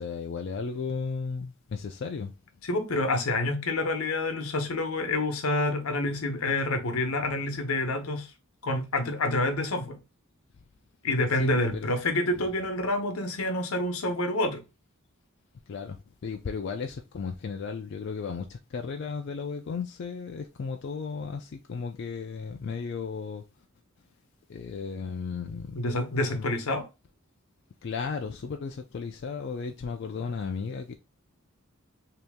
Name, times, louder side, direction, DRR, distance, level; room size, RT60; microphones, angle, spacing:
voice 1, 0.0-2.3 11.4-11.9 15.7-23.4 24.5-25.8 26.3-26.5 27.8-30.9, left 5 dB, 55° left, 0.3 m, -35 dB
voice 2, 2.6-8.3 8.6-10.0 11.0-14.6 25.7-26.8, left 2 dB, 80° left, 0.9 m, -28 dB
3.0 x 2.8 x 3.4 m
head